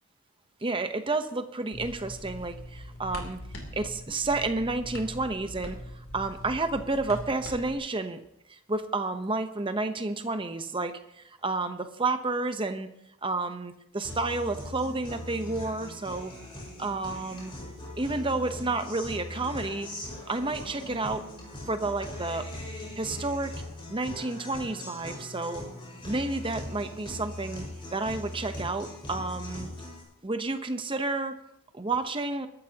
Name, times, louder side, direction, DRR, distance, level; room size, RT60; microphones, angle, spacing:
voice 1, 0.6-3.4 3.7-5.8 6.1-8.2 8.5-12.9 13.2-16.3 16.8-17.5 18.0-19.9 20.3-21.3 21.7-22.5 23.0-23.6 23.9-25.7 26.0-27.6 27.9-29.7 30.2-31.4 31.7-32.5, right 3 dB, 25° right, 8 dB, 0.9 m, -30 dB
sound 1, 1.7-7.7, left 1 dB, 65° left, 3.2 m, -42 dB
Guitar, 14.0-30.0, left 1 dB, 25° left, 5.1 m, -40 dB
22.0 x 13.0 x 2.9 m, 0.79 s
head